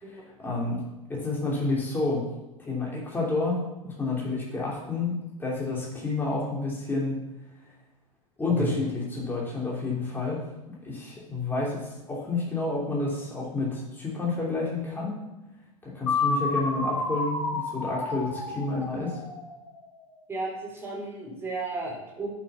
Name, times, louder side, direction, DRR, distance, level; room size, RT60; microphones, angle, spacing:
voice 1, 0.1-0.8 1.1-2.2 2.6-7.2 8.4-10.4 10.8-15.2 15.8-19.2, left 3 dB, 10° left, -5 dB, 3.0 m, -30 dB
sound 1, 16.1-19.9, left 3 dB, 70° left, 3.5 m, -30 dB
voice 2, 20.3-22.3, right 3 dB, 15° right, -3 dB, 3.8 m, -33 dB
8.5 x 6.4 x 6.9 m, 1.0 s
figure-of-eight pair, 90°, 18 cm